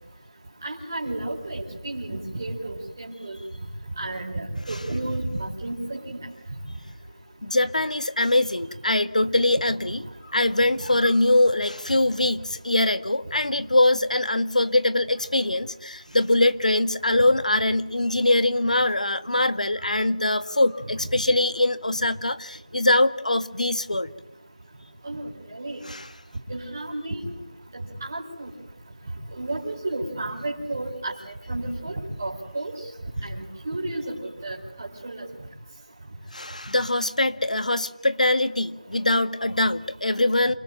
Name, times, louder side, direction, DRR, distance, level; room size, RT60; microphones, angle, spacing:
voice 1, 0.6-3.4 4.0-6.2 25.0-25.8 26.5-27.3 27.7-28.5 29.3-31.1 31.5-32.8 33.2-34.2 34.4-35.3, right 2 dB, 25° right, -4 dB, 4.7 m, -32 dB
voice 2, 7.4-24.1 25.8-26.1 36.3-40.5, left 2 dB, 80° left, 12 dB, 1.8 m, -23 dB
27.5 x 20.0 x 9.0 m, 0.86 s
figure-of-eight pair, 175°, 4 cm